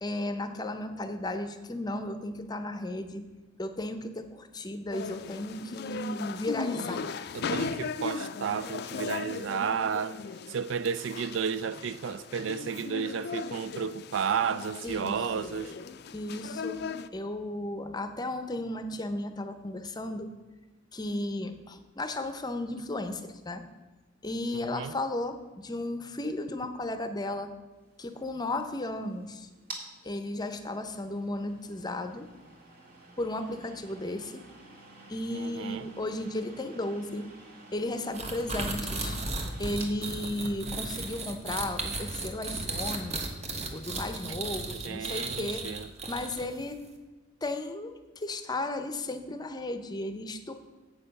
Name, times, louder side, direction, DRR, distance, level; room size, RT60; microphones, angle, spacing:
voice 1, 0.0-3.2 3.6-7.0 14.8-15.2 16.1-16.8 17.1-20.3 20.9-23.6 24.2-27.5 28.0-29.5 30.0-32.3 33.2-34.4 35.1-37.3 37.7-39.2 39.6-43.2 43.7-45.6 46.1-46.8 47.4-50.5, left 1 dB, 20° left, 0.6 m, -34 dB
sound 1, 4.9-17.1, left 5 dB, 55° left, 0.4 m, -37 dB
voice 2, 7.3-10.2 10.5-15.7 24.5-24.9 35.3-35.9 44.7-45.9, right 7 dB, 75° right, 0.4 m, -32 dB
sound 2, 27.9-46.6, right 2 dB, 50° right, 1.8 m, -52 dB
sound 3, 38.1-46.6, right 3 dB, 35° right, 1.1 m, -35 dB
8.2 x 6.7 x 5.4 m
head